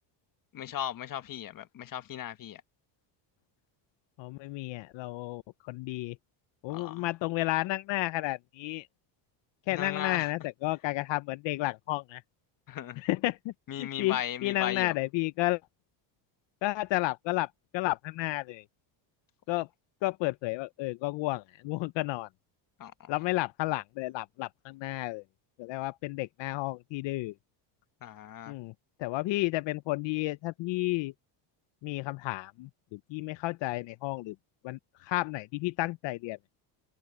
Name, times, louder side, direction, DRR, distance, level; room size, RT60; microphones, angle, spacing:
voice 1, 0.5-2.6 6.7-7.0 9.7-10.3 12.7-13.0 13.7-14.9 22.8-23.1 28.0-28.6, left 11 dB, 45° left, 1.3 m, -37 dB
voice 2, 4.2-6.2 6.6-8.9 9.7-12.2 13.0-15.6 16.6-18.6 19.5-19.7 20.0-22.3 23.1-25.2 25.6-27.3 28.5-28.7 29.0-31.1 31.8-34.4 34.6-36.4, left 19 dB, 65° left, 0.7 m, -32 dB
cardioid pair, 115°, 48 cm